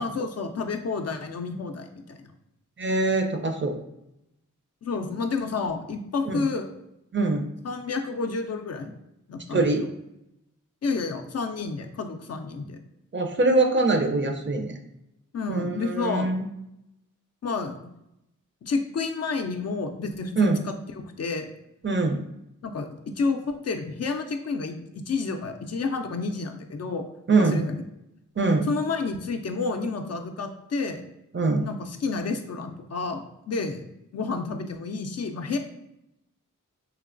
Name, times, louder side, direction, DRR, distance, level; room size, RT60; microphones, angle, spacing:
voice 1, 0.0-2.3 4.8-6.7 7.6-8.9 9.3-9.9 10.8-12.8 15.3-16.3 17.4-17.8 18.6-20.7 21.2-21.5 22.6-27.1 27.4-27.7 28.7-31.0 31.6-33.8 34.1-35.6, left 4 dB, 50° left, 6 dB, 0.4 m, -30 dB
voice 2, 2.8-3.8 6.3-6.4 7.1-7.4 9.5-9.8 13.1-14.8 15.5-16.4 20.4-20.6 21.8-22.2 27.3-27.6 28.4-28.7 31.3-31.6, right 3 dB, 35° right, 5 dB, 0.5 m, -23 dB
3.3 x 2.9 x 2.5 m, 0.84 s
cardioid pair, 45°, 32 cm